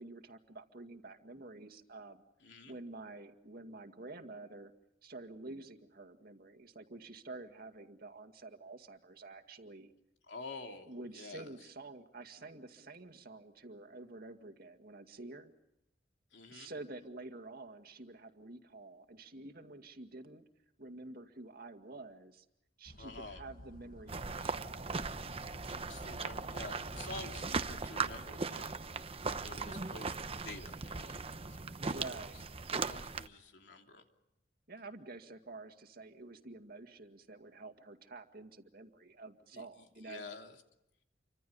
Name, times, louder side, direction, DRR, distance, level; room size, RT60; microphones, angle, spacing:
voice 1, 0.0-2.2 2.7-4.7 5.0-9.9 10.9-15.5 16.5-20.4 20.8-22.5 22.8-24.9 31.8-32.4 34.7-40.2, right 2 dB, 55° right, 6 dB, 2.1 m, -49 dB
voice 2, 2.4-2.8 10.3-11.5 16.3-16.7 23.0-23.4 25.7-28.7 29.4-30.1 30.4-31.6 31.9-32.1 32.8-34.0 39.5-39.6 40.0-40.5, left 3 dB, 70° left, 3 dB, 3.1 m, -49 dB
sound 1, 22.9-27.9, left 1 dB, 50° left, 1.2 m, -53 dB
sound 2, 24.1-33.3, right 4 dB, 30° right, 0.9 m, -39 dB
29.0 x 25.0 x 5.5 m, 0.87 s
head